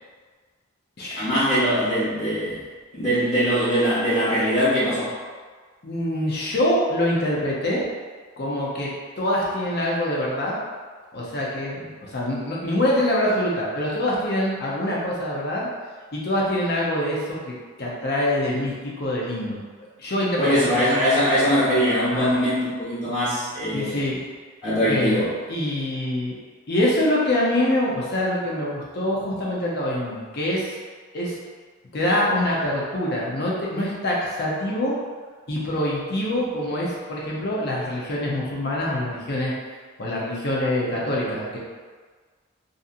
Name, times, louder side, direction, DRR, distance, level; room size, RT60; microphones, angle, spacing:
voice 1, 1.2-2.6 2.9-5.1 20.4-24.0 24.6-25.3, equal, 30° left, -11 dB, 1.2 m, -21 dB
voice 2, 5.8-7.8 8.4-8.9 9.2-10.5 11.1-15.7 16.1-19.6 20.0-20.6 22.1-22.3 23.7-24.2 24.9-25.2 25.5-26.3 26.7-30.7 31.1-31.4 31.9-34.9 35.5-39.5 40.0-41.6, left 1 dB, 50° left, -5 dB, 0.6 m, -25 dB
2.6 x 2.6 x 2.4 m, 1.5 s
head